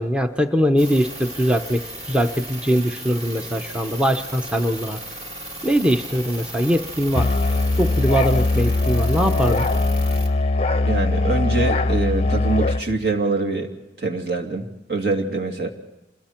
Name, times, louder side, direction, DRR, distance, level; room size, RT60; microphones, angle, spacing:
voice 1, 0.0-5.0 5.6-7.3 7.8-9.7, equal, 5° right, 6 dB, 0.7 m, -21 dB
sound 1, 0.8-10.3, right 1 dB, 40° right, 2.8 m, -35 dB
Musical instrument, 7.1-12.9, left 2 dB, 35° left, 0.6 m, -21 dB
voice 2, 10.8-13.7 14.0-15.7, right 3 dB, 60° right, 2 dB, 2.5 m, -24 dB
27.5 x 21.5 x 4.4 m, 1.1 s
head